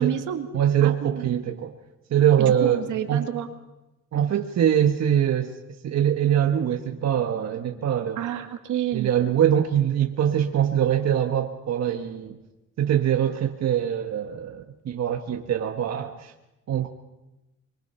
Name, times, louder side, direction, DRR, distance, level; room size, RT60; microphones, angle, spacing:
voice 1, 0.0-0.5 0.8-1.4 2.4-3.5 8.2-9.1, right 10 dB, 80° right, 5 dB, 2.1 m, -29 dB
voice 2, 0.5-1.7 2.1-2.8 3.1-3.2 4.1-5.5 5.8-8.2 8.9-12.4 12.8-16.3 16.7-16.9, right 10 dB, 60° right, 4 dB, 1.5 m, -23 dB
24.5 x 23.0 x 5.7 m, 0.96 s
cardioid pair, 90°, 30 cm